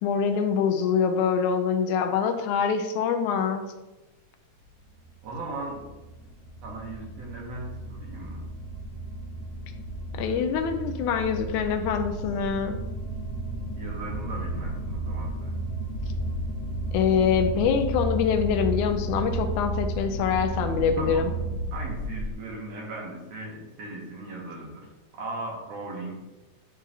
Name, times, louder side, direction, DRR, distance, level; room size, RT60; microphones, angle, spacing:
voice 1, 0.0-3.6 10.1-12.8 16.9-21.3, left 7 dB, 80° left, 6 dB, 1.9 m, -25 dB
sound 1, 4.8-22.3, right 1 dB, 50° left, 2.5 m, -33 dB
voice 2, 5.2-5.9 6.6-8.5 13.8-15.6 21.0-21.3 21.7-26.2, right 2 dB, 65° right, -2 dB, 2.2 m, -37 dB
10.0 x 3.7 x 2.7 m, 1.1 s
omnidirectional pair, 3.5 m